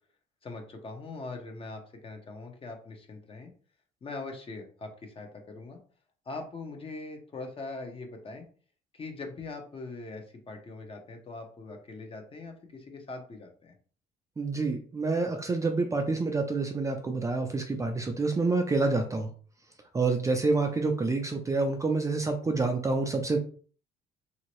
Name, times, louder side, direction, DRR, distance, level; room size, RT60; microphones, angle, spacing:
voice 1, 0.4-3.5 4.0-5.8 6.3-8.4 8.9-13.7, left 3 dB, 35° left, 4 dB, 0.8 m, -41 dB
voice 2, 14.4-19.3 19.9-23.4, right 3 dB, 20° right, 4 dB, 0.4 m, -27 dB
3.0 x 2.8 x 3.0 m, 0.43 s
cardioid pair, 110°, 17 cm